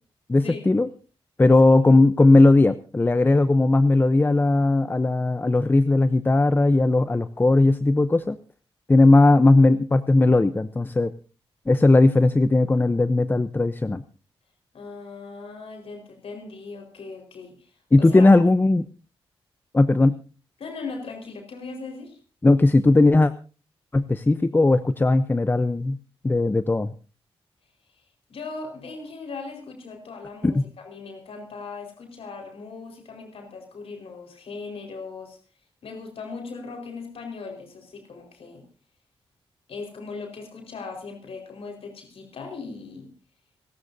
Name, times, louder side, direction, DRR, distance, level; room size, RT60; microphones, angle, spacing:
voice 1, 0.3-0.9 1.4-8.4 8.9-11.1 11.7-14.0 17.9-18.9 19.7-20.2 22.4-23.3 23.9-26.0 26.2-26.9 30.4-30.6, left 2 dB, 20° left, 13 dB, 0.7 m, -18 dB
voice 2, 14.7-17.7 18.0-18.3 20.6-22.2 28.3-35.4 35.8-38.6 39.7-43.1, left 4 dB, 70° left, 3 dB, 4.6 m, -38 dB
30.0 x 13.0 x 2.7 m, 0.35 s
cardioid pair, 75°, 10 cm